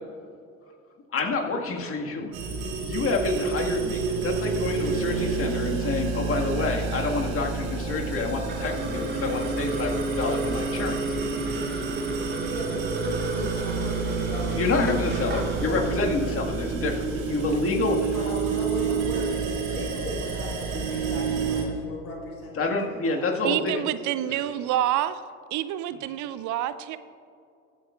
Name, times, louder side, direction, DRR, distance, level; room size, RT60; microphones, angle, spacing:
voice 1, 1.1-2.3 2.8-11.0 12.3-12.4 14.5-18.1 22.5-23.8 24.2-24.4, left 3 dB, 30° left, 1 dB, 1.9 m, -28 dB
sound 1, 2.3-21.6, right 4 dB, 60° right, 2.9 m, -28 dB
sound 2, 8.2-18.8, right 4 dB, 25° right, 1.5 m, -40 dB
sound 3, 8.4-15.7, right 2 dB, 80° right, 1.9 m, -45 dB
voice 2, 12.5-14.8 15.0-16.1 18.1-23.3, left 1 dB, 85° left, -3 dB, 2.6 m, -37 dB
voice 3, 23.4-25.2 25.5-27.0, right 12 dB, 45° right, 14 dB, 0.6 m, -27 dB
23.0 x 8.4 x 2.5 m, 2.5 s
hypercardioid pair, 65°, 42 cm